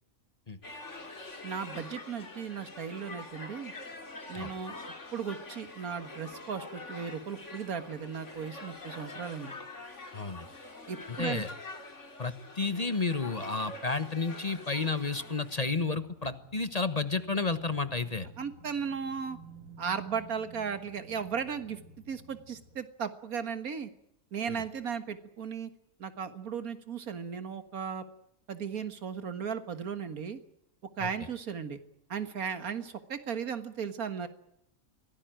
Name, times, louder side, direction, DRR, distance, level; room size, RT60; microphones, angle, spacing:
sound 1, 0.6-15.8, left 2 dB, 55° left, 3.1 m, -45 dB
voice 1, 1.4-3.7 4.3-4.8 5.1-9.5 10.9-11.4 18.4-19.4 19.8-21.8 22.1-23.9 24.3-25.7 26.0-28.0 28.5-30.4 31.0-31.8 32.1-34.3, right 6 dB, 90° right, 11 dB, 2.0 m, -36 dB
voice 2, 10.1-10.4 11.1-11.5 12.2-18.3 24.5-24.6 31.0-31.1, left 3 dB, 30° left, 12 dB, 1.2 m, -31 dB
sound 2, 14.8-22.8, right 3 dB, 65° right, 3.2 m, -53 dB
24.0 x 17.5 x 9.1 m, 0.79 s
omnidirectional pair, 1.5 m